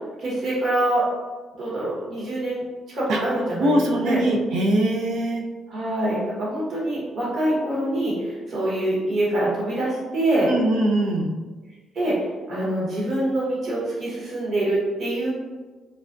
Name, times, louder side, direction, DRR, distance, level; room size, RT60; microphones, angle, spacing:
voice 1, 0.2-1.1 1.5-4.2 5.7-10.5 11.9-15.3, right 1 dB, 60° right, -6 dB, 1.2 m, -25 dB
voice 2, 3.6-5.4 10.4-11.3, right 1 dB, 80° right, 0 dB, 0.4 m, -22 dB
4.0 x 2.2 x 2.5 m, 1.3 s
cardioid pair, 90°, 0 cm